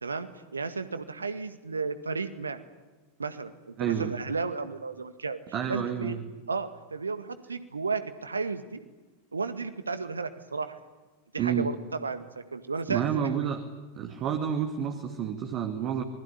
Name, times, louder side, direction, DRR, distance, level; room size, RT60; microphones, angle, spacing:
voice 1, 0.0-2.6 3.2-5.4 5.7-6.1 6.5-8.8 9.3-10.8 11.3-13.3, right 4 dB, 75° right, 11 dB, 1.9 m, -33 dB
voice 2, 3.8-4.2 5.5-6.3 11.4-11.7 12.9-13.6 14.0-16.0, right 8 dB, 35° right, 5 dB, 2.3 m, -29 dB
26.5 x 21.0 x 9.9 m, 1.2 s
figure-of-eight pair, 90°, 0 cm